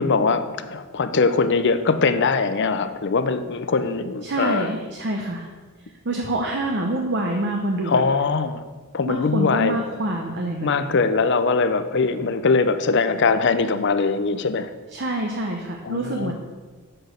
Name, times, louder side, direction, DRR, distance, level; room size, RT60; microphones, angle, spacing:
voice 1, 0.0-4.7 7.9-8.6 8.9-9.8 10.6-14.7 15.8-16.3, left 4 dB, 55° left, 11 dB, 0.6 m, -21 dB
voice 2, 4.2-5.5 6.0-8.0 9.1-10.9 14.9-16.3, right 1 dB, 50° right, 1 dB, 0.9 m, -26 dB
7.8 x 6.2 x 6.5 m, 1.4 s
head